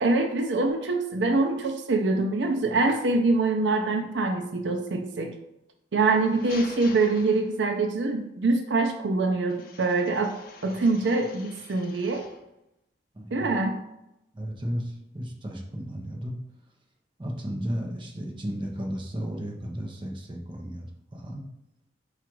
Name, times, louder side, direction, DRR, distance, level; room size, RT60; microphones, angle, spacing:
voice 1, 0.0-5.3 5.9-12.3 13.3-13.8, right 3 dB, 80° right, 4 dB, 0.5 m, -24 dB
sound 1, 6.0-7.9 9.5-12.5, left 4 dB, 55° left, 0.6 m, -46 dB
voice 2, 13.1-13.5 14.3-16.3 17.2-21.4, equal, 25° right, 0 dB, 0.8 m, -34 dB
4.9 x 2.5 x 4.5 m, 0.87 s
head